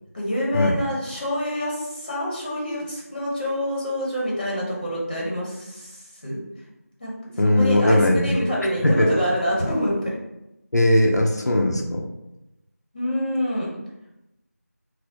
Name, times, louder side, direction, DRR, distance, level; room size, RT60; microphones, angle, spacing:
voice 1, 0.1-6.4 7.0-7.1 7.5-10.1 12.9-13.7, equal, 30° left, -5 dB, 1.0 m, -26 dB
voice 2, 7.4-8.4 8.8-9.1 10.7-12.1, left 1 dB, 80° left, 1 dB, 0.5 m, -19 dB
4.1 x 2.0 x 2.9 m, 0.92 s
figure-of-eight pair, 170°, 9 cm